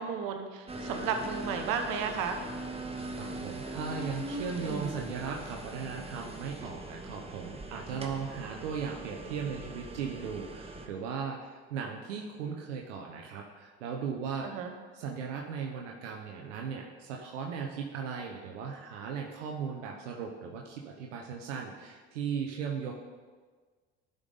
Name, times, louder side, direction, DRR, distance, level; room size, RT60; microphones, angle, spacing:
voice 1, 0.0-2.4 7.9-8.1 14.4-14.7, right 6 dB, 65° right, 6 dB, 1.1 m, -33 dB
sound 1, 0.7-10.9, right 1 dB, 15° right, 1.1 m, -41 dB
voice 2, 3.2-14.6 14.9-22.9, right 6 dB, 90° right, 0 dB, 0.8 m, -37 dB
11.5 x 5.3 x 3.9 m, 1.5 s
hypercardioid pair, 70°, 35 cm